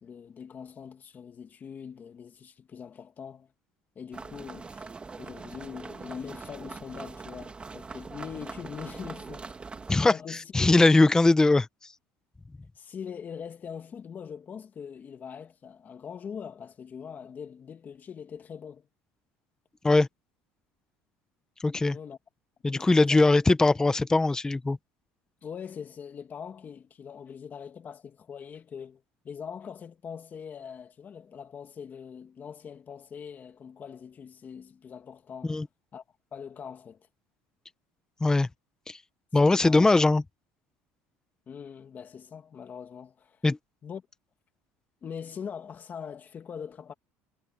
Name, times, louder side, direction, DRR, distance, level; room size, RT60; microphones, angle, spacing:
voice 1, 0.0-3.5 4.0-4.9 5.2-9.4 10.0-10.7 12.8-18.9 21.9-22.2 22.7-23.2 25.4-35.6 35.9-36.0 36.3-37.1 39.5-39.9 41.5-43.4 43.8-44.0 45.0-46.9, left 7 dB, 35° left, 2.1 m, -42 dB
sound 1, 4.1-9.9, right 4 dB, 20° right, 2.1 m, -42 dB
voice 2, 10.5-11.7 19.8-20.1 21.6-22.0 22.6-24.8 35.5-35.7 38.2-38.5 38.9-39.0 39.3-40.2 43.4-43.6, left 2 dB, 10° left, 1.0 m, -21 dB
cardioid pair, 120°, 5 cm